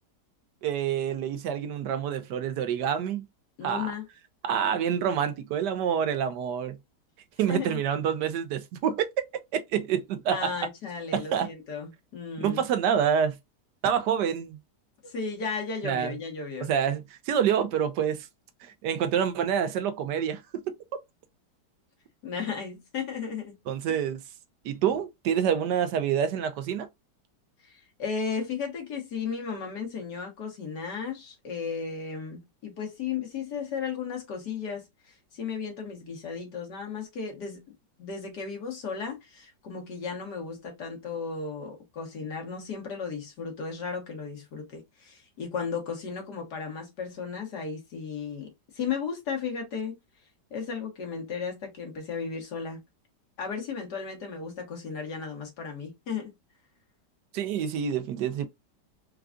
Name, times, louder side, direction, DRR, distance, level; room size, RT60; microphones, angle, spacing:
voice 1, 0.6-3.2 3.6-3.9 4.4-6.8 7.4-9.1 9.7-10.5 11.1-11.5 12.4-13.3 13.8-14.6 15.8-16.1 16.7-18.3 18.6-20.6 23.7-24.2 24.6-26.9 57.3-58.5, right 8 dB, 75° right, 1.2 m, -27 dB
voice 2, 3.6-4.1 7.5-7.8 10.3-12.6 15.0-16.7 22.2-23.6 23.9-24.0 27.6-37.6 38.0-50.0 50.5-52.8 53.4-56.3, left 5 dB, 70° left, 1.9 m, -35 dB
4.7 x 2.3 x 2.4 m
omnidirectional pair, 1.9 m